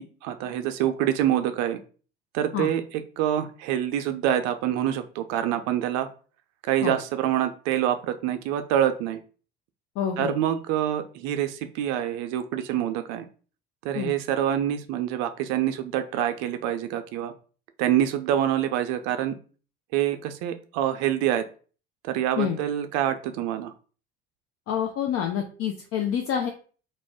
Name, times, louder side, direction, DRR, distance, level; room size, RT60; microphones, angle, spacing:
voice 1, 0.0-1.8 2.3-6.1 6.6-9.2 10.2-13.3 13.8-17.3 17.8-19.4 19.9-21.5 22.0-23.7, right 11 dB, 60° right, 9 dB, 0.5 m, -26 dB
voice 2, 10.0-10.3 13.9-14.1 22.4-22.6 24.7-26.5, left 9 dB, 50° left, 3 dB, 0.5 m, -27 dB
2.4 x 2.1 x 3.4 m, 0.39 s
hypercardioid pair, 70°, 31 cm